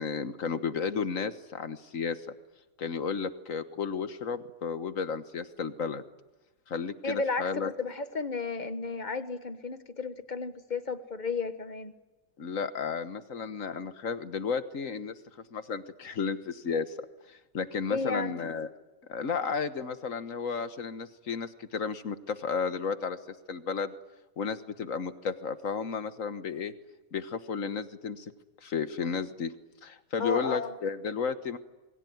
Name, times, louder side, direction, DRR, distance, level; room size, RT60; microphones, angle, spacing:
voice 1, 0.0-2.2 2.8-6.0 6.7-7.7 12.4-15.1 15.5-17.0 17.3-18.7 19.1-23.2 23.5-23.9 24.4-26.7 27.1-28.3 28.6-29.5 29.8-31.6, left 5 dB, 50° left, 11 dB, 1.6 m, -33 dB
voice 2, 7.0-11.9 17.9-18.3 30.2-30.7, left 4 dB, 30° left, 10 dB, 1.3 m, -33 dB
28.0 x 22.5 x 9.5 m, 1.1 s
omnidirectional pair, 1.9 m